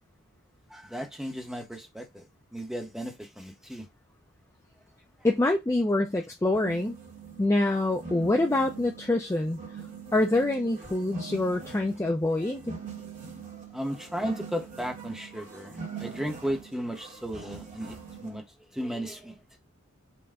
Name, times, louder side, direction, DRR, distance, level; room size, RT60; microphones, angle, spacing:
voice 1, 0.7-2.3 2.5-3.9 13.7-18.4 18.7-19.4, equal, ahead, 0.8 m, -35 dB
voice 2, 5.2-7.0 7.4-9.6 10.1-12.7, left 2 dB, 15° left, 0.4 m, -25 dB
sound 1, 6.5-18.4, right 5 dB, 35° right, 1.2 m, -43 dB
5.5 x 2.1 x 3.5 m
head